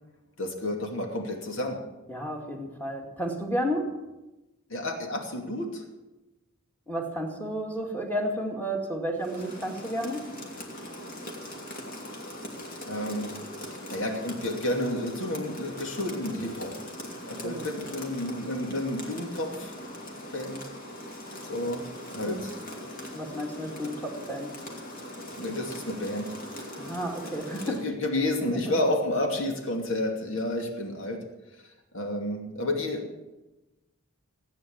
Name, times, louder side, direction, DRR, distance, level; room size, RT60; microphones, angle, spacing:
voice 1, 0.4-1.8 4.7-5.9 12.9-13.3 13.9-16.7 17.3-19.7 20.3-20.6 21.4-21.9 22.1-22.5 25.4-26.3 27.6-31.2 31.9-33.2, left 1 dB, 60° left, 3 dB, 2.6 m, -30 dB
voice 2, 2.1-4.0 6.9-10.3 17.4-17.7 22.3-22.4 23.1-24.5 26.8-27.8 28.5-28.6, equal, 10° left, 1 dB, 2.3 m, -32 dB
Rain, 9.2-27.9, left 1 dB, 40° left, 2.6 m, -41 dB
16.0 x 9.2 x 8.7 m, 1.0 s
head